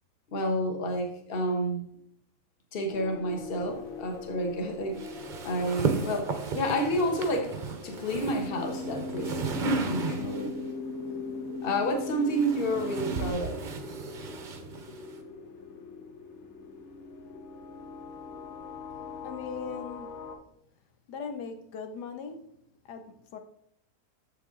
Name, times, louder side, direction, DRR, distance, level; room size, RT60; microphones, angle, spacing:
voice 1, 0.3-1.9 2.7-5.0 5.4-7.6 7.8-10.6 11.6-13.6, equal, 40° left, 1.3 m, -30 dB
sound 1, 2.9-20.4, left 4 dB, 60° left, 1.3 m, -43 dB
sound 2, 5.0-10.6 11.6-15.2, right 4 dB, 50° right, 0.6 m, -34 dB
sound 3, 8.3-13.3, left 3 dB, 20° left, 0.7 m, -38 dB
voice 2, 18.9-20.4 21.1-23.4, left 5 dB, 85° left, 1.4 m, -40 dB
7.2 x 6.6 x 3.7 m
omnidirectional pair, 1.7 m